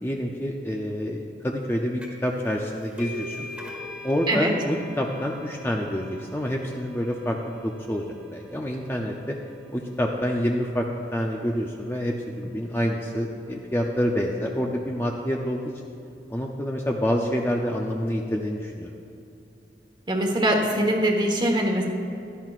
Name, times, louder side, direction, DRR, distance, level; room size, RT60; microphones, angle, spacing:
voice 1, 0.0-3.4 4.0-9.4 9.7-15.6 16.3-18.9, equal, 15° left, 0 dB, 0.5 m, -27 dB
sound 1, 2.0-2.3 2.6-9.9, left 1 dB, 5° right, 1.8 m, -42 dB
voice 2, 20.1-21.9, right 1 dB, 25° right, 1 dB, 1.3 m, -22 dB
16.5 x 12.0 x 2.5 m, 2.6 s
head